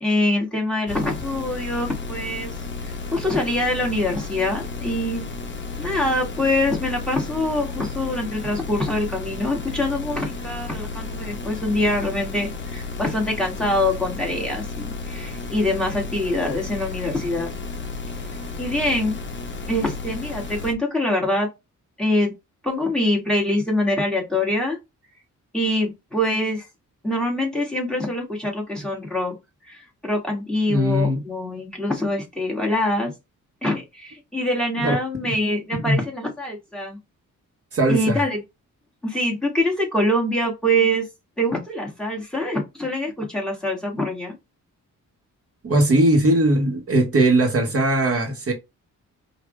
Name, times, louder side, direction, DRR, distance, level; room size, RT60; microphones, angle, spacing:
voice 1, 0.0-2.5 2.8-5.3 5.8-17.5 18.6-19.2 19.7-21.5 22.0-22.3 22.6-24.8 25.5-26.7 27.0-29.3 29.7-33.1 33.6-37.0 37.9-38.4 39.0-41.1 41.4-44.4, left 1 dB, ahead, 1.7 m, -24 dB
sound 1, 0.9-20.7, left 3 dB, 35° left, 0.9 m, -33 dB
voice 2, 30.7-31.2 34.8-34.9 35.9-36.0 37.7-38.2 45.6-48.5, right 1 dB, 45° right, 1.3 m, -19 dB
5.0 x 2.6 x 3.3 m
wide cardioid pair, 125°, 31 cm